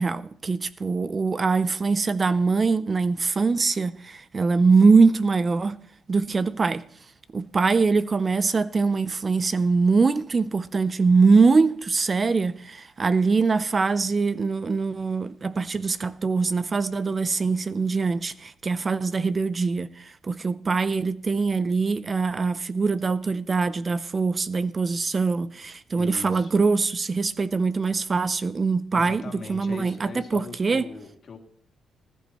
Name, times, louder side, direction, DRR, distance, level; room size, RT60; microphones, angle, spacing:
voice 1, 0.0-5.8 6.1-6.8 7.3-30.8, right 4 dB, 35° right, 0.5 m, -23 dB
voice 2, 25.9-26.6 28.9-31.4, left 4 dB, 45° left, 2.4 m, -40 dB
20.0 x 11.5 x 3.0 m
cardioid pair, 90°, 0 cm